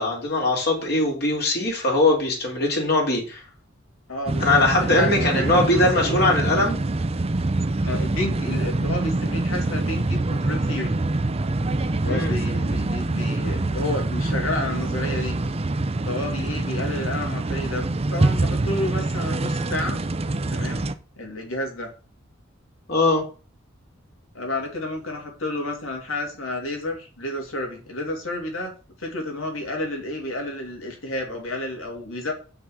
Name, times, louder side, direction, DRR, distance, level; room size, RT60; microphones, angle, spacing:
voice 1, 0.0-3.4 4.4-6.8 12.1-12.3 22.9-23.2, left 2 dB, 50° left, -1 dB, 3.1 m, -21 dB
voice 2, 4.1-6.1 7.8-11.0 12.0-15.4 16.0-20.0 20.5-20.9 21.2-21.9 24.3-28.7 29.0-32.3, left 1 dB, 85° left, 2 dB, 3.1 m, -31 dB
sound 1, 4.3-20.9, right 2 dB, 30° right, 0.6 m, -25 dB
7.1 x 6.0 x 6.4 m, 0.35 s
head